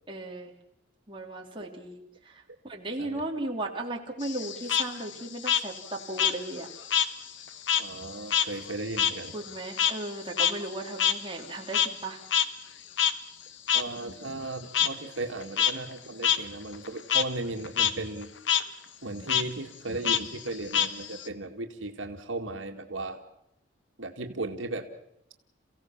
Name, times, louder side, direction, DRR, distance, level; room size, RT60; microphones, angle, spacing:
voice 1, 0.1-0.5 1.1-6.7 9.3-12.2, right 2 dB, 25° right, 0 dB, 3.2 m, -36 dB
Frog, 4.2-7.1 7.4-12.1 12.3-12.4 13.0-13.1 13.7-13.8 14.7-14.9 15.4-15.7 16.2-16.4 16.7-17.2 17.6-17.9 18.2-18.6 19.3-19.4 20.0-21.3, left 9 dB, 75° left, 1.2 m, -26 dB
voice 2, 7.8-9.4 13.7-18.3 19.0-23.2 24.0-24.9, right 2 dB, 85° right, 4 dB, 2.1 m, -36 dB
29.0 x 16.5 x 7.3 m, 0.83 s
head